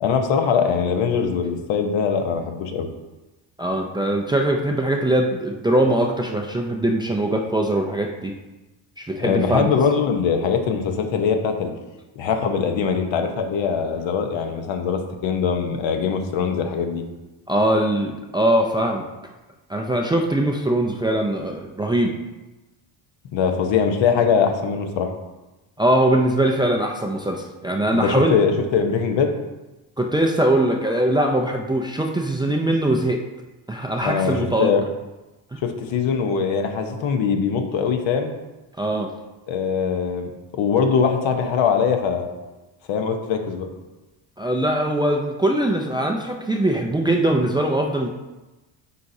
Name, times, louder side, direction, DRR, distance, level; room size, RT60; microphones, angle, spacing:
voice 1, 0.0-2.9 9.2-11.7 12.2-17.0 23.3-25.1 28.0-29.3 34.0-34.8 35.6-38.3 39.5-42.3 42.9-43.7, left 6 dB, 70° left, 5 dB, 1.0 m, -22 dB
voice 2, 3.6-8.3 9.0-9.7 17.5-19.1 19.7-22.1 25.8-28.4 30.0-33.2 33.7-34.7 38.8-39.1 44.4-48.1, right 1 dB, 10° right, 1 dB, 0.4 m, -21 dB
9.4 x 4.2 x 2.7 m, 1.1 s
cardioid pair, 105°, 47 cm